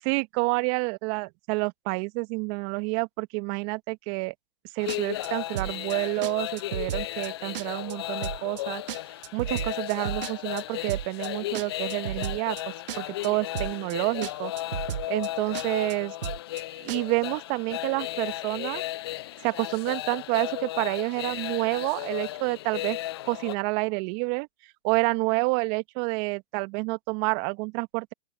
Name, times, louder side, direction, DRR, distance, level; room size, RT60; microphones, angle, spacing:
voice 1, 0.1-4.3 4.7-8.8 9.3-14.5 15.1-16.2 16.8-18.8 19.4-23.0 23.3-24.5 24.8-28.1, right 30 dB, 30° right, 1.7 m, -29 dB
sound 1, 4.8-23.6, left 15 dB, 25° left, 0.4 m, -35 dB
sound 2, 4.9-5.3 5.6-5.9 6.2-6.3 6.6-7.3 7.5-7.9 8.2-8.6 8.9-10.6 10.9-11.3 11.5-12.6 12.9-13.3 13.6-13.9 14.2-14.3 14.6-15.3 15.5-15.9 16.2-16.6 16.9-17.0, right 10 dB, 65° right, 1.0 m, -33 dB
open air
hypercardioid pair, 125°, 30 cm